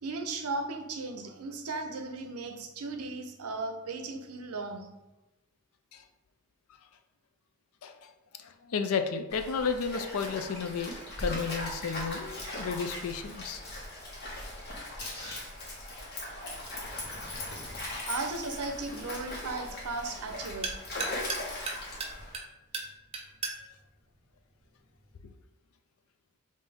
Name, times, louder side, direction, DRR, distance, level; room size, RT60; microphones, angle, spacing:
voice 1, 0.0-4.9 18.1-20.7, right 3 dB, 85° right, 5 dB, 0.6 m, -36 dB
voice 2, 8.4-13.6, left 5 dB, 80° left, 8 dB, 0.5 m, -33 dB
Stream, 9.3-22.4, left 1 dB, 45° left, 1.2 m, -39 dB
sound 1, 18.0-25.2, right 4 dB, 25° right, 0.5 m, -41 dB
5.1 x 2.7 x 3.5 m, 1.0 s
head